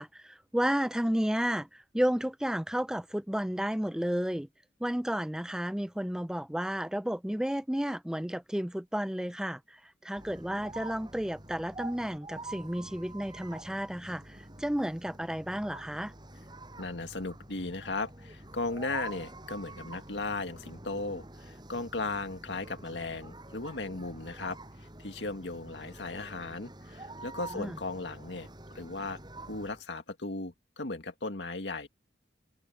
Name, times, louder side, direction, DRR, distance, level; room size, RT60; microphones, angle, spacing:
voice 1, 0.0-4.5 4.8-16.1 27.5-27.8, equal, 5° right, 0.4 m, -32 dB
sound 1, 10.2-29.8, right 2 dB, 25° right, 6.8 m, -47 dB
voice 2, 16.8-28.5 28.7-29.2 29.5-31.9, left 3 dB, 80° left, 2.0 m, -36 dB
head